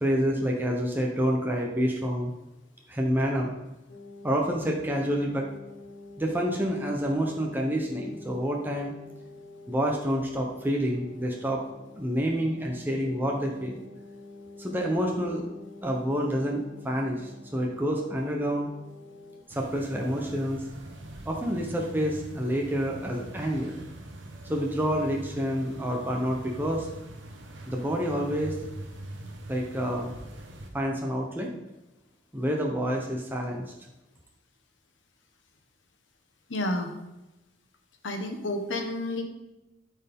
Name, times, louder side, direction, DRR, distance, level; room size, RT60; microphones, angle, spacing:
voice 1, 0.0-2.3 2.9-3.5 4.2-5.5 6.2-8.9 9.7-11.6 12.0-13.8 14.6-15.5 15.8-18.7 19.5-20.7 21.2-23.8 24.5-26.9 27.7-28.6 29.5-30.1 30.7-31.5 32.3-33.7, equal, 10° right, -1 dB, 0.8 m, -28 dB
sound 1, 3.9-19.4, left 2 dB, 55° left, 1.2 m, -48 dB
sound 2, 19.5-30.7, right 1 dB, 85° right, 1.1 m, -42 dB
voice 2, 36.5-36.9 38.0-39.2, left 1 dB, 90° left, 4 dB, 1.2 m, -30 dB
12.5 x 4.5 x 3.6 m, 1.0 s
head